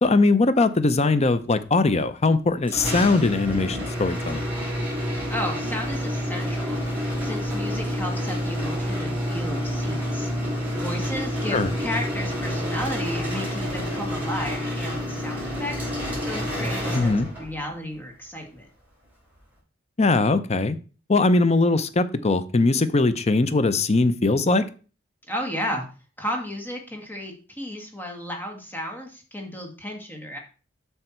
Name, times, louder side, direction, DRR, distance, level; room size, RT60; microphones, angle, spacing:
voice 1, 0.0-4.4 11.5-11.7 16.9-17.3 20.0-20.8 21.1-24.6, left 3 dB, 35° left, 13 dB, 0.6 m, -20 dB
sound 1, 2.7-17.6, equal, 10° right, 4.3 m, -28 dB
voice 2, 5.3-10.3 10.8-15.9 16.3-18.7 25.3-25.8 26.2-30.4, equal, 10° left, 1 dB, 1.9 m, -33 dB
7.9 x 5.7 x 4.4 m, 0.36 s
head